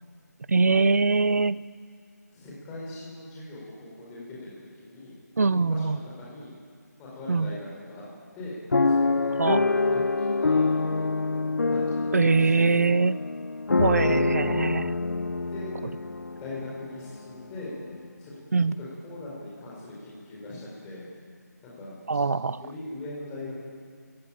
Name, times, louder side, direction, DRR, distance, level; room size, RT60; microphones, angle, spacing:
voice 1, 0.5-1.6 5.4-6.0 7.3-7.5 9.4-9.7 12.1-13.2 13.8-14.9 18.5-18.8 22.1-22.6, right 4 dB, 60° right, 18 dB, 0.7 m, -23 dB
voice 2, 2.3-5.1 5.5-6.5 7.0-8.0 8.3-11.0 11.7-12.6 14.0-14.3 15.5-15.7 16.4-17.8 18.2-21.1 21.6-22.2 22.5-23.5, left 2 dB, 10° left, -6 dB, 4.6 m, -41 dB
sound 1, 8.7-16.8 17.4-17.5 17.8-18.0, left 3 dB, 75° left, 1.0 m, -26 dB
29.0 x 16.5 x 8.9 m, 2.1 s
figure-of-eight pair, 175°, 10 cm